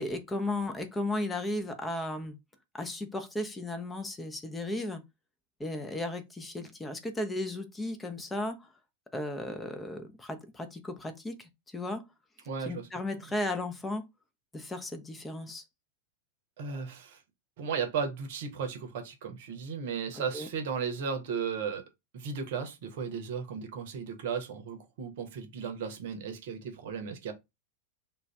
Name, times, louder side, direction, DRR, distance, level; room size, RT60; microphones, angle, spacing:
voice 1, 0.0-2.4 2.7-5.0 5.6-8.7 9.1-12.0 12.7-14.0 14.5-15.6 20.1-20.5, left 1 dB, 10° left, 0.7 m, -35 dB
voice 2, 12.5-12.9 16.6-17.2 17.6-21.8 22.1-27.3, right 6 dB, 55° right, 0.8 m, -35 dB
2.4 x 2.4 x 3.3 m
figure-of-eight pair, 90°, 0 cm